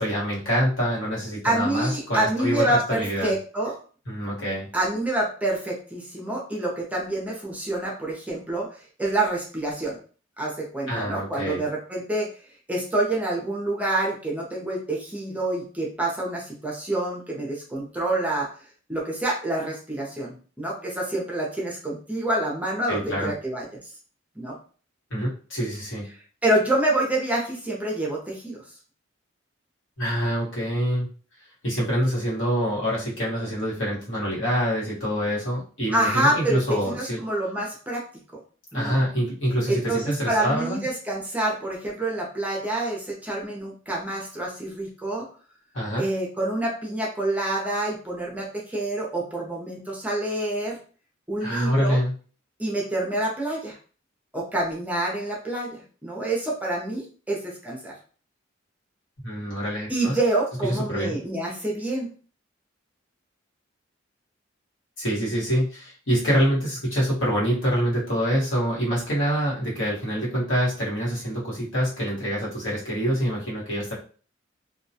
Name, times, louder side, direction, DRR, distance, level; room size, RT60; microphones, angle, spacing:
voice 1, 0.0-3.3 4.1-4.7 10.9-11.6 22.9-23.3 25.1-26.1 30.0-31.1 31.6-37.2 38.7-40.9 45.7-46.1 51.4-52.1 59.2-60.2 60.7-61.2 65.0-73.9, equal, 75° left, -6 dB, 1.2 m, -26 dB
voice 2, 1.4-3.7 4.7-8.7 9.0-10.0 10.4-12.3 12.7-18.5 18.9-23.9 24.4-24.6 26.4-28.6 35.9-36.6 36.9-38.0 38.7-39.0 39.7-45.3 46.0-50.8 51.3-52.0 52.6-53.8 54.3-58.0 59.9-62.1, right 1 dB, 10° right, -2 dB, 0.5 m, -27 dB
2.3 x 2.1 x 2.7 m, 0.40 s
head